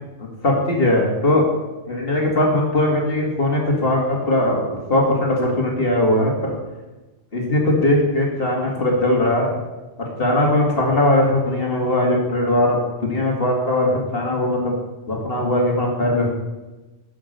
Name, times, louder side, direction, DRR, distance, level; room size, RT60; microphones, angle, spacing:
voice 1, 0.4-1.4 1.9-6.6 7.3-9.6 10.2-14.7 15.1-16.4, left 1 dB, 45° left, -1 dB, 2.3 m, -19 dB
11.0 x 5.9 x 6.6 m, 1.1 s
omnidirectional pair, 1.4 m